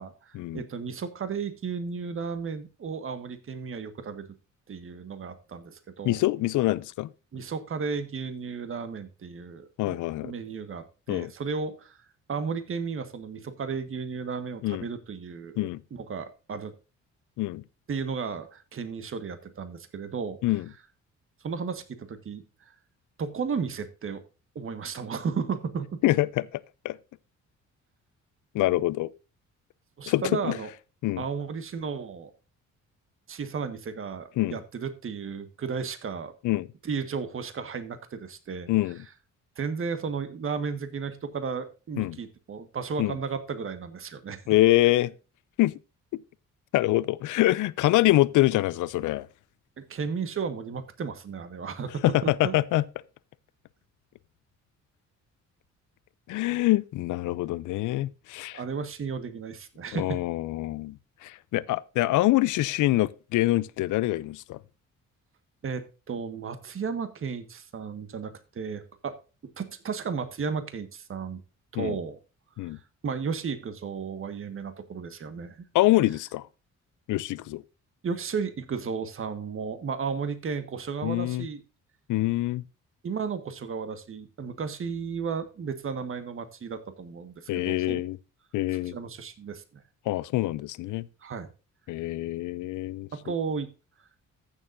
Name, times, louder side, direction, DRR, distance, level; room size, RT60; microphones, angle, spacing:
voice 1, 0.0-4.3 4.7-6.2 7.3-10.0 10.2-12.0 12.3-16.7 17.9-20.4 21.4-22.7 23.2-24.2 24.5-26.0 30.0-30.7 31.2-32.3 33.3-36.3 36.8-38.7 39.6-44.5 49.8-52.6 58.5-60.2 65.6-69.1 69.6-71.4 71.7-72.2 72.6-75.6 78.0-81.6 83.0-88.0 88.8-89.8 91.2-91.5 93.1-93.7, right 5 dB, 45° right, 1.5 m, -34 dB
voice 2, 6.0-7.1 9.8-10.3 11.1-11.3 14.6-14.9 15.6-15.8 17.4-17.6 20.4-20.6 26.0-26.5 26.8-27.0 28.5-29.1 30.1-30.6 31.0-31.2 34.4-34.6 36.4-36.7 38.7-39.0 42.0-42.2 43.0-43.1 44.5-45.1 45.6-45.7 46.7-49.3 52.0-52.8 56.3-58.6 59.9-61.0 61.2-64.6 71.8-72.0 72.6-72.8 75.7-76.4 77.1-77.6 81.0-81.4 82.1-82.6 87.5-88.2 88.5-88.9 90.1-91.1 91.9-93.1, left 17 dB, 80° left, 0.6 m, -25 dB
15.0 x 6.9 x 2.6 m
cardioid pair, 90°, 30 cm